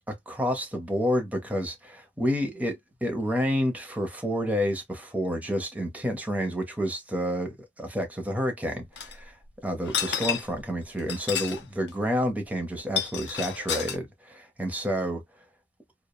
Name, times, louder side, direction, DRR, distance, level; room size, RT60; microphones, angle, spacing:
voice 1, 0.0-9.4 9.6-15.2, equal, 10° right, 0.6 m, -29 dB
sound 1, 9.0-9.1 9.8-10.6 11.0-11.6 11.9-12.0 12.8-14.0, left 8 dB, 65° left, 0.6 m, -30 dB
3.0 x 2.0 x 2.2 m
head